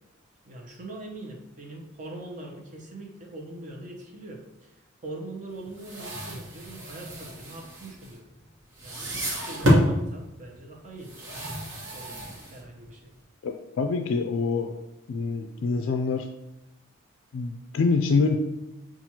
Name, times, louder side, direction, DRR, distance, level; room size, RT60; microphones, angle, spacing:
voice 1, 0.5-8.2 8.8-11.3 11.7-13.1, right 2 dB, 40° right, 0 dB, 0.7 m, -42 dB
sound 1, 5.7-8.4 8.7-10.0 11.0-12.9, equal, 60° right, 1.1 m, -28 dB
voice 2, 13.4-14.7 15.1-16.3 17.3-18.4, left 4 dB, 75° left, 5 dB, 0.3 m, -25 dB
5.8 x 2.4 x 2.8 m, 0.93 s
head